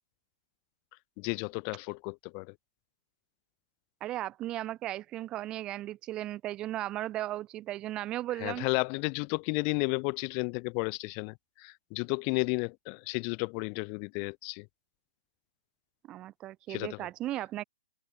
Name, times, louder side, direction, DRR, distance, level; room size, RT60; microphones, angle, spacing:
voice 1, 1.2-2.5 8.4-14.7 16.7-17.1, left 40 dB or more, 35° left, 1.2 m, -33 dB
voice 2, 4.0-8.7 16.1-17.6, right 14 dB, 25° right, 1.9 m, -36 dB
hypercardioid pair, 125°, 3 cm